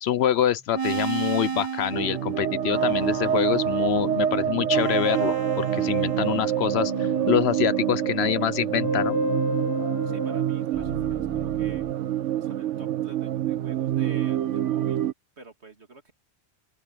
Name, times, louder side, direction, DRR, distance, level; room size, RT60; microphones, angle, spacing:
voice 1, 0.0-9.2, left 10 dB, 70° left, 0.8 m, -26 dB
sound 1, 0.7-6.5 6.7-11.9, right 2 dB, 20° right, 1.3 m, -32 dB
sound 2, 1.9-15.1, right 10 dB, 80° right, 1.1 m, -26 dB
voice 2, 10.1-11.9 12.4-15.1 15.4-16.1, right 3 dB, 65° right, 3.0 m, -47 dB
open air
omnidirectional pair, 1.2 m